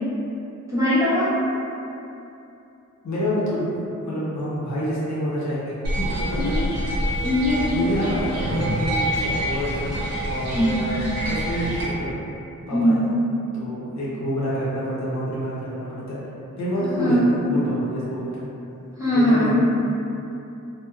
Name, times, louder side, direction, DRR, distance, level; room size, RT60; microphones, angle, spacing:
voice 1, 0.7-1.3 6.3-6.7 7.2-7.7 10.5-10.9 12.7-13.0 17.0-17.2 19.0-19.5, equal, 10° right, -12 dB, 1.0 m, -20 dB
voice 2, 3.0-6.6 7.7-12.2 12.7-13.0 13.5-16.2 16.6-17.2 17.5-18.5 19.1-19.5, equal, 60° left, -9 dB, 0.7 m, -28 dB
sound 1, 5.8-11.8, equal, 55° right, 0.7 m, -26 dB
2.8 x 2.0 x 2.3 m, 2.8 s
wide cardioid pair, 75°, 31 cm